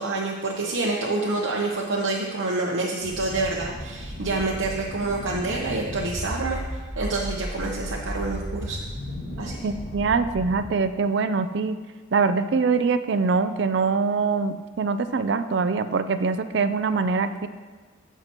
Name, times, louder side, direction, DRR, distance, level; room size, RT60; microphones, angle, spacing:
voice 1, 0.0-6.6 7.0-8.8 9.4-9.6, right 3 dB, 90° right, -2 dB, 0.8 m, -27 dB
sound 1, 3.0-10.6, equal, 50° left, 2.7 m, -35 dB
voice 2, 9.6-11.8 12.1-17.5, right 4 dB, 60° right, 11 dB, 0.4 m, -23 dB
15.5 x 5.8 x 3.0 m, 1.4 s
head